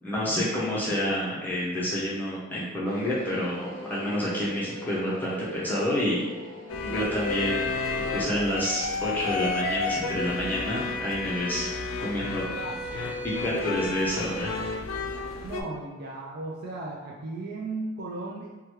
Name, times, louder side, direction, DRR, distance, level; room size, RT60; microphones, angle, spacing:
voice 1, 0.0-6.2 6.8-7.7 7.9-11.7 12.0-12.5 13.4-14.6, equal, 10° left, -8 dB, 0.6 m, -29 dB
sound 1, 2.8-8.3, equal, 5° right, 1.1 m, -41 dB
sound 2, 6.7-15.6, left 3 dB, 85° left, 0.3 m, -31 dB
voice 2, 15.4-18.5, right 2 dB, 55° right, -4 dB, 0.4 m, -35 dB
3.0 x 2.3 x 3.0 m, 1.2 s
head